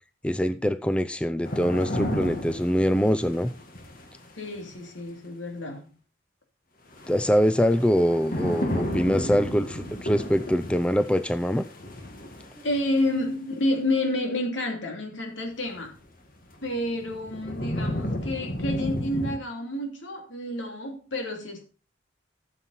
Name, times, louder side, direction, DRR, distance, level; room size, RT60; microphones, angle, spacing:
voice 1, 0.2-3.5 7.1-11.6, equal, 5° left, 0.4 m, -24 dB
sound 1, 1.4-4.5 6.9-13.2 15.9-16.0 16.5-19.4, equal, 45° left, 1.9 m, -33 dB
voice 2, 4.3-5.9 12.6-16.0 16.6-21.6, left 1 dB, 75° left, 3.0 m, -29 dB
13.5 x 7.2 x 4.3 m
head